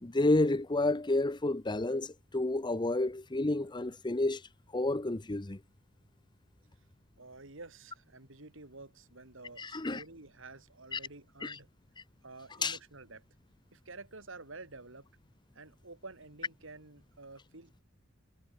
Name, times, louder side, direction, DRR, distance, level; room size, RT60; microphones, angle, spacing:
voice 1, 0.0-4.4 4.7-5.6 9.6-10.0 10.9-11.0 11.4-11.6 12.6-12.8, left 2 dB, 20° left, 0.9 m, -30 dB
voice 2, 7.2-11.7 12.2-13.2 13.7-15.1 15.5-17.8, right 3 dB, 65° right, 3.4 m, -50 dB
head